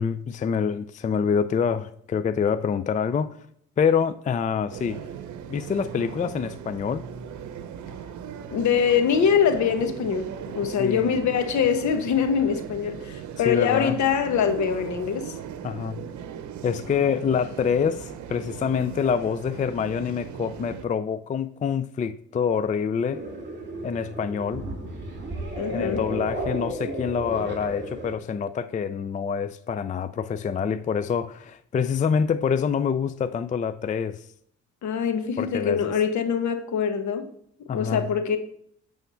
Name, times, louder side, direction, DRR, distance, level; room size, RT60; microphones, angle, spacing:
voice 1, 0.0-3.4 3.8-5.1 5.5-7.0 10.6-11.1 13.5-14.0 15.6-16.0 16.6-23.2 23.8-24.7 25.7-34.3 35.4-35.9 37.7-38.1, left 6 dB, 25° left, 0.4 m, -26 dB
sound 1, 4.7-20.9, right 8 dB, 75° right, 0.8 m, -38 dB
voice 2, 8.5-10.3 10.5-15.4 25.6-26.0 34.8-37.3 37.7-38.4, left 7 dB, 70° left, 1.2 m, -23 dB
sound 2, 23.1-28.2, equal, 35° right, 2.7 m, -33 dB
9.3 x 3.5 x 6.9 m
cardioid pair, 90°, 30 cm